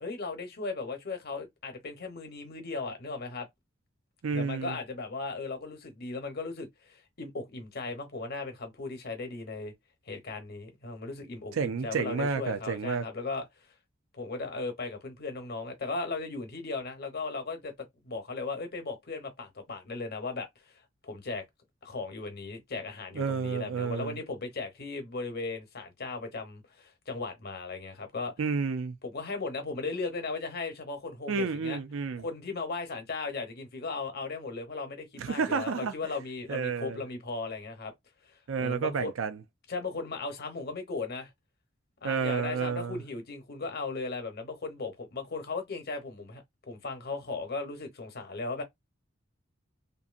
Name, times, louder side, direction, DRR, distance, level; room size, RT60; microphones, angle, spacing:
voice 1, 0.0-3.5 4.3-9.7 10.1-13.5 14.1-20.5 21.0-21.4 21.8-28.3 29.0-31.8 32.2-37.9 38.6-39.1 39.7-41.3 42.0-48.6, left 3 dB, 55° left, 0.9 m, -37 dB
voice 2, 4.2-4.8 11.5-13.1 23.1-24.2 28.4-29.0 31.3-32.2 35.2-35.9 36.5-37.0 38.5-39.4 42.0-43.0, right 5 dB, 80° right, 0.5 m, -30 dB
2.6 x 2.6 x 2.5 m
head